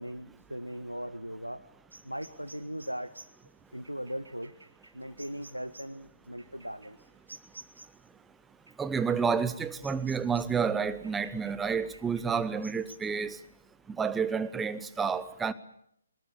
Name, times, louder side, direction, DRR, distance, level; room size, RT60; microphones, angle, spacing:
voice 1, 0.0-1.6 2.0-3.1 3.7-4.5 4.9-7.0, equal, 90° right, 1.3 m, -38 dB
sound 1, 1.9-8.1 8.7-10.7 11.0-13.0, right 2 dB, 70° right, 2.7 m, -53 dB
voice 2, 8.8-13.4 13.9-15.5, right 6 dB, 5° right, 1.0 m, -30 dB
23.5 x 22.0 x 8.6 m
figure-of-eight pair, 140°, 0 cm